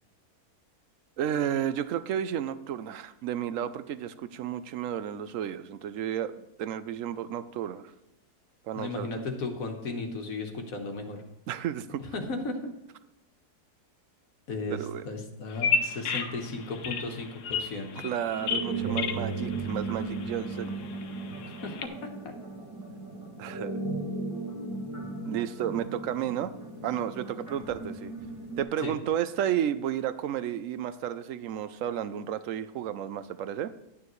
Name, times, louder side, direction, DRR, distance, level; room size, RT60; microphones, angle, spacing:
voice 1, 1.2-6.3 6.6-7.9 8.6-9.1 11.5-12.0 14.7-15.1 18.0-20.8 23.4-23.7 25.3-26.5 26.8-28.1 28.6-33.7, right 10 dB, 70° right, 13 dB, 0.8 m, -32 dB
voice 2, 8.7-11.2 12.0-12.6 14.5-18.1 21.5-22.3 28.8-28.9, left 3 dB, 60° left, 4 dB, 1.6 m, -35 dB
Bird vocalization bird call bird song, 15.5-21.8, left 5 dB, 80° left, 1.4 m, -33 dB
sound 1, 18.3-28.6, right 3 dB, 10° right, 2.1 m, -36 dB
11.0 x 9.3 x 3.1 m, 0.91 s
omnidirectional pair, 1.7 m